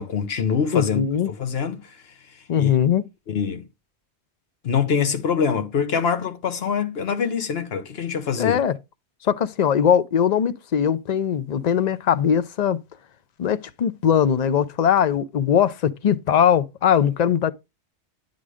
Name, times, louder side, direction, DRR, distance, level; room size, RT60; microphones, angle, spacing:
voice 1, 0.0-1.9 2.6-2.7 3.3-3.7 4.6-8.6, left 6 dB, 65° left, 1.2 m, -24 dB
voice 2, 0.7-1.3 2.5-3.0 8.4-8.7 9.2-12.8 13.4-17.5, left 8 dB, 50° left, 0.6 m, -20 dB
9.7 x 3.8 x 4.9 m
omnidirectional pair, 1.1 m